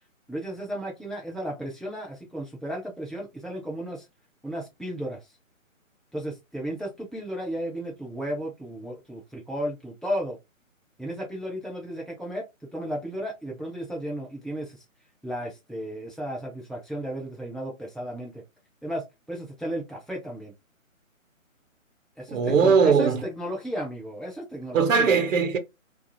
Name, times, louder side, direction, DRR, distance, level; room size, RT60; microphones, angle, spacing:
voice 1, 0.3-4.1 4.4-5.2 6.1-10.4 11.0-14.8 15.2-18.4 18.8-20.5 22.2-25.1, equal, ahead, 0.4 m, -34 dB
voice 2, 22.3-23.2 24.7-25.6, right 5 dB, 65° right, 0.8 m, -20 dB
2.4 x 2.3 x 2.8 m
hypercardioid pair, 175°, 41 cm